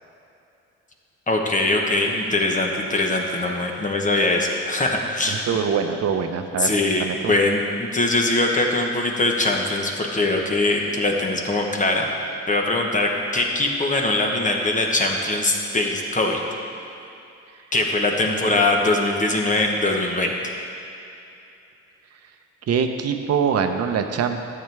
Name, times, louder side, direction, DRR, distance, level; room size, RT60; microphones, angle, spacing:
voice 1, 1.3-5.5 6.6-12.1 12.5-16.4 17.7-20.4, left 2 dB, 25° left, 1 dB, 1.2 m, -22 dB
voice 2, 5.3-6.7 7.0-7.3 18.3-18.6 22.7-24.4, right 6 dB, 55° right, 6 dB, 0.8 m, -24 dB
12.0 x 7.9 x 3.5 m, 2.7 s
cardioid pair, 90°, 30 cm